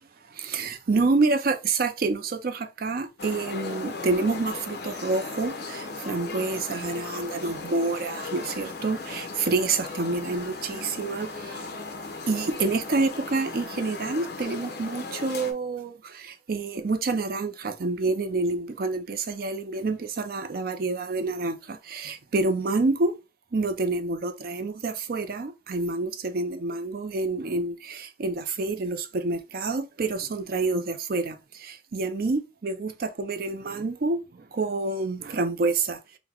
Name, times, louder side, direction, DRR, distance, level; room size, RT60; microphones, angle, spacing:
voice 1, 0.3-11.7 12.2-23.2 23.5-36.0, right 3 dB, 50° right, 0.5 m, -28 dB
sound 1, 3.2-15.5, left 3 dB, 55° left, 0.8 m, -37 dB
3.9 x 2.1 x 4.3 m
head